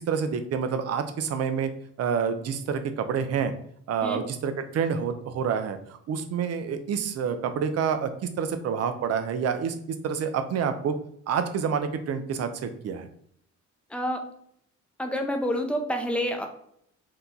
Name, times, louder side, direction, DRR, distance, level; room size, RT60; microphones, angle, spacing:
voice 1, 0.1-1.7 2.0-3.5 3.9-11.0 11.3-13.1, right 7 dB, 55° right, 9 dB, 0.5 m, -28 dB
voice 2, 13.9-14.2 15.0-16.5, equal, 5° left, 4 dB, 0.5 m, -28 dB
2.8 x 2.2 x 3.8 m, 0.68 s
cardioid pair, 90°, 30 cm